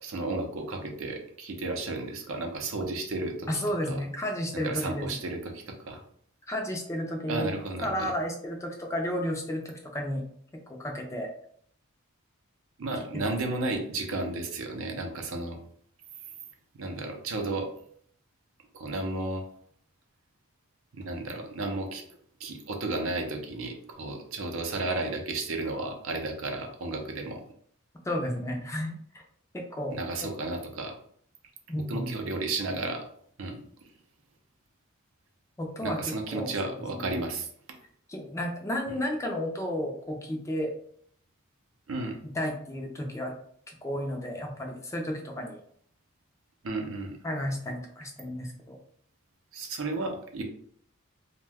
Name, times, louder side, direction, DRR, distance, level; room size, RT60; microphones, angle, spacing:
voice 1, 0.0-4.0 4.5-6.0 7.3-8.1 12.8-15.6 16.7-17.7 18.7-19.4 20.9-22.0 22.4-27.4 29.9-30.9 31.9-33.0 33.4-33.6 35.8-37.5 38.9-39.0 41.9-42.2 46.6-47.2 49.5-50.4, right 2 dB, 65° right, 4 dB, 0.5 m, -33 dB
voice 2, 3.5-5.1 6.5-7.5 7.8-10.2 10.7-11.3 13.5-13.6 28.0-29.2 29.5-29.9 31.7-32.1 35.6-36.0 36.3-37.2 38.1-40.7 42.3-43.3 43.7-45.6 47.2-48.8, equal, 15° left, 1 dB, 0.4 m, -32 dB
2.6 x 2.2 x 3.3 m, 0.63 s
head